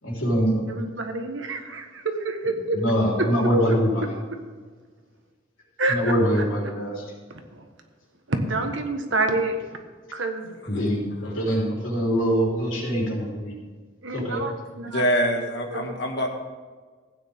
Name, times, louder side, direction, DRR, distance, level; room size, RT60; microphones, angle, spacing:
voice 1, 0.0-0.8 2.7-4.1 5.9-7.0 10.7-13.5 14.1-14.4, equal, 85° left, -3 dB, 3.8 m, -24 dB
voice 2, 0.7-2.8 3.7-3.8 5.8-6.0 7.5-7.6 8.3-9.6 10.1-10.5 14.0-15.1 15.7-15.9, right 2 dB, 75° right, 5 dB, 1.5 m, -27 dB
voice 3, 10.5-10.9 11.2-11.6 14.8-16.3, equal, 60° left, 2 dB, 1.9 m, -26 dB
15.0 x 9.4 x 3.7 m, 1.4 s
head